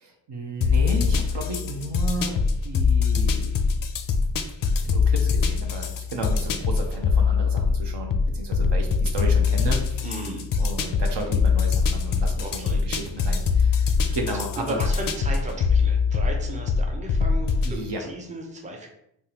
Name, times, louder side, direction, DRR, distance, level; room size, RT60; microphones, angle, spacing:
voice 1, 0.0-3.6 4.8-10.0 10.6-14.8 17.6-18.1, right 2 dB, 55° right, 2 dB, 0.8 m, -33 dB
sound 1, 0.6-17.8, left 5 dB, 45° left, 0.4 m, -23 dB
voice 2, 10.0-10.4 12.4-12.8 13.9-18.9, right 1 dB, 15° right, 1 dB, 0.6 m, -36 dB
3.4 x 2.0 x 2.9 m, 0.77 s
supercardioid pair, 40°, 49 cm